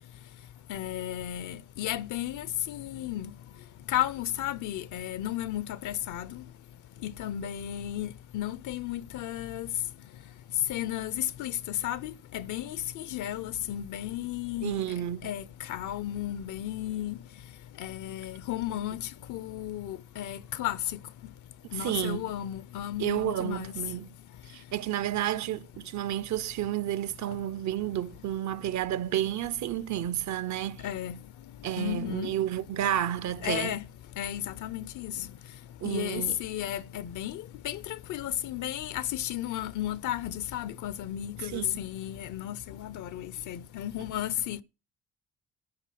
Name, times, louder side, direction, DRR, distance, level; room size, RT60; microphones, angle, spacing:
voice 1, 0.7-3.3 3.9-6.4 7.0-8.1 8.3-9.7 10.7-11.5 11.8-14.8 15.2-15.4 15.7-17.1 17.8-19.0 19.3-20.8 21.7-23.7 30.8-31.2 31.8-32.3 33.4-33.8 34.2-35.1 35.8-37.8 38.1-44.6, left 12 dB, 80° left, 0.8 m, -34 dB
voice 2, 14.6-15.3 21.7-22.3 23.0-24.1 24.5-30.9 31.6-33.8 35.8-36.4 41.4-41.8, right 12 dB, 70° right, 0.6 m, -31 dB
12.5 x 4.6 x 7.6 m
cardioid pair, 90°, 30 cm